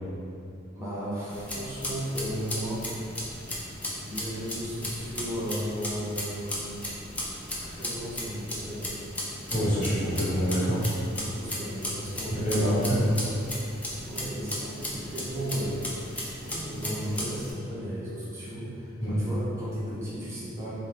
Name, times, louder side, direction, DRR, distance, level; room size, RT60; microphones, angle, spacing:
voice 1, 0.7-2.9 4.1-6.6 7.6-8.9 11.0-12.8 13.8-20.7, equal, 15° right, -10 dB, 0.7 m, -35 dB
sound 1, 1.3-17.5, left 1 dB, 5° left, 0.3 m, -36 dB
voice 2, 9.5-10.8 12.3-13.2 19.0-19.2, equal, 40° left, -10 dB, 1.0 m, -26 dB
2.5 x 2.3 x 3.2 m, 2.6 s
head